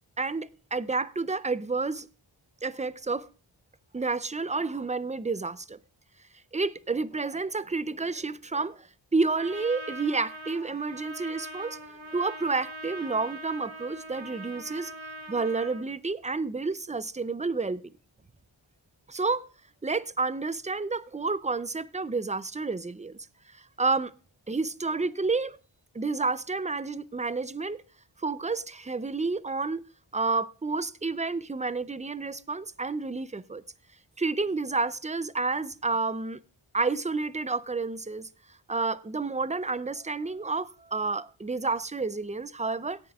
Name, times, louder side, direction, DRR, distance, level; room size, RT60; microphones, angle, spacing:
voice 1, 0.2-2.1 2.6-3.3 3.9-5.8 6.5-8.9 9.1-11.8 12.1-14.9 15.3-17.8 19.1-19.4 19.8-23.2 23.5-24.1 24.5-25.6 25.9-27.8 28.2-29.8 30.1-33.6 34.2-36.4 36.7-38.3 38.7-43.0, right 3 dB, 15° right, 0.4 m, -30 dB
Trumpet, 9.3-15.8, right 2 dB, 65° right, 1.5 m, -42 dB
17.5 x 10.5 x 2.3 m
wide cardioid pair, 50°, 50 cm